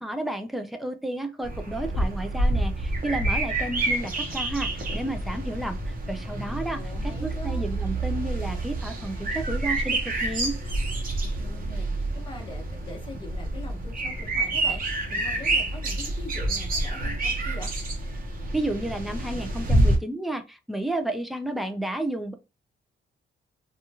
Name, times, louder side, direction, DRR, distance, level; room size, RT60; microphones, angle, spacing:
voice 1, 0.0-6.8 7.0-10.5 18.5-22.3, right 1 dB, ahead, 0.3 m, -32 dB
sound 1, 1.4-20.0, right 2 dB, 50° right, 0.7 m, -28 dB
voice 2, 6.7-7.6 11.2-17.7, left 2 dB, 25° left, 0.9 m, -43 dB
2.8 x 2.3 x 2.7 m
wide cardioid pair, 170°, 19 cm